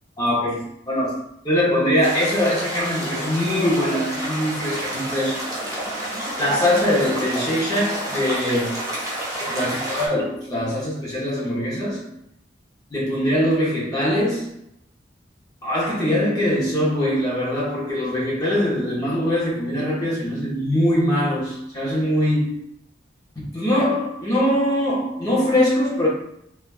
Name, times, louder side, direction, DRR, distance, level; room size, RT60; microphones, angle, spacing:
voice 1, 0.2-1.2 1.4-5.4 6.4-8.8 9.5-12.1 12.9-14.5 15.6-22.6 23.4-26.1, left 1 dB, 20° left, 0.7 m, -22 dB
sound 1, 2.0-10.1, right 1 dB, 20° right, 0.6 m, -29 dB
3.3 x 2.3 x 2.3 m
head